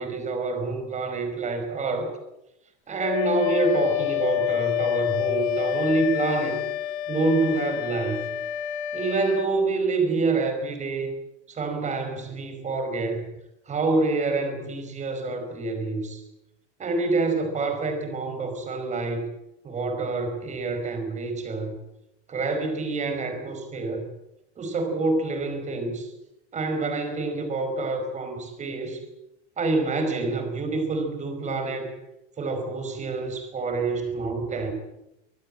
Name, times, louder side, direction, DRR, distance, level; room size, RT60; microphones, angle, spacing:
voice 1, 0.0-2.1 2.9-6.6 7.1-8.2 8.9-11.1 11.5-13.3 13.7-16.2 16.8-19.3 19.6-21.7 22.3-24.0 24.6-26.1 26.5-29.0 29.6-31.9 32.4-34.7, right 3 dB, 20° right, 7 dB, 5.0 m, -27 dB
Wind instrument woodwind instrument, 3.0-9.5, left 13 dB, 65° left, 2.1 m, -28 dB
25.0 x 19.0 x 7.7 m, 0.89 s
supercardioid pair, 155°, 36 cm